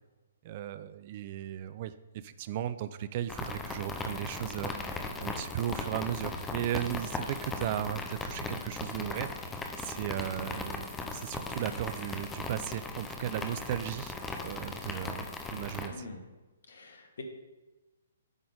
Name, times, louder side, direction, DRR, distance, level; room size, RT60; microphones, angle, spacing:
voice 1, 0.4-14.2 14.4-15.3 15.5-16.1, right 11 dB, 40° right, 13 dB, 0.3 m, -36 dB
sound 1, 3.3-15.9, left 3 dB, 10° left, 0.7 m, -38 dB
voice 2, 15.9-16.2 16.7-17.2, left 3 dB, 65° left, 4 dB, 1.3 m, -44 dB
8.8 x 3.9 x 5.1 m, 1.2 s
figure-of-eight pair, 125°, 0 cm